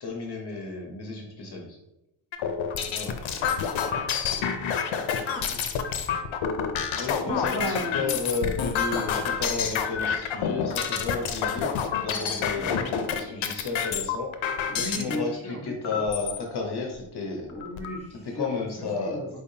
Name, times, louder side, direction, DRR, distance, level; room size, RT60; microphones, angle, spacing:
voice 1, 0.0-1.8 2.9-3.2 6.9-14.3 14.7-17.5 18.1-19.3, left 4 dB, 60° left, 0 dB, 0.9 m, -32 dB
sound 1, 2.3-15.2 15.8-16.4 16.9-17.0 17.3-18.0, left 7 dB, 85° left, 0.6 m, -28 dB
voice 2, 3.2-3.6 4.4-4.6 5.3-5.6 7.2-8.2 12.5-13.1 14.7-16.0 17.5-18.5 19.0-19.2, left 1 dB, 15° left, -4 dB, 1.2 m, -35 dB
4.5 x 3.4 x 2.7 m, 0.89 s
cardioid pair, 105°, 46 cm